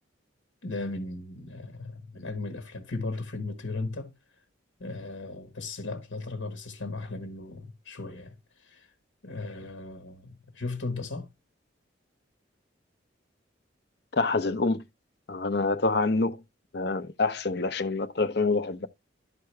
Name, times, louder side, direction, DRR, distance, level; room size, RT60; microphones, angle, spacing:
voice 1, 0.6-4.2 4.8-8.9 9.2-11.3, left 3 dB, 85° left, 1.3 m, -36 dB
voice 2, 14.1-14.8 15.3-16.4 16.7-18.9, left 3 dB, 55° left, 0.7 m, -26 dB
12.0 x 4.8 x 3.2 m
head